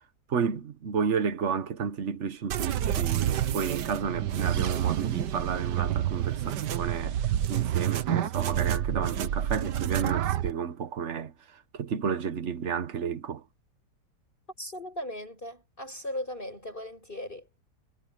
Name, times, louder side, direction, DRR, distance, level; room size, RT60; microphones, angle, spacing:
voice 1, 0.3-7.1 7.5-11.3 11.8-13.4, right 6 dB, 45° right, 1.3 m, -31 dB
sound 1, 2.5-10.5, right 11 dB, 80° right, 1.6 m, -28 dB
voice 2, 14.6-17.5, left 1 dB, 30° left, 7.9 m, -37 dB
omnidirectional pair, 1.8 m